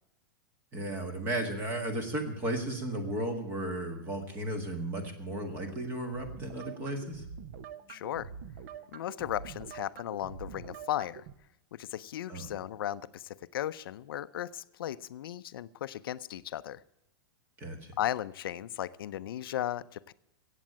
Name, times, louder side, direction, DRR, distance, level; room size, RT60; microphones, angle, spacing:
voice 1, 0.7-7.2 12.3-12.5 17.6-17.9, right 1 dB, 20° right, 6 dB, 1.7 m, -34 dB
sound 1, 6.1-11.3, right 7 dB, 35° right, 0.7 m, -46 dB
voice 2, 7.9-8.3 8.9-11.2 11.7-16.8 18.0-20.1, left 12 dB, 80° left, 15 dB, 0.5 m, -36 dB
15.0 x 8.3 x 8.7 m, 0.84 s
supercardioid pair, 180°, 12 cm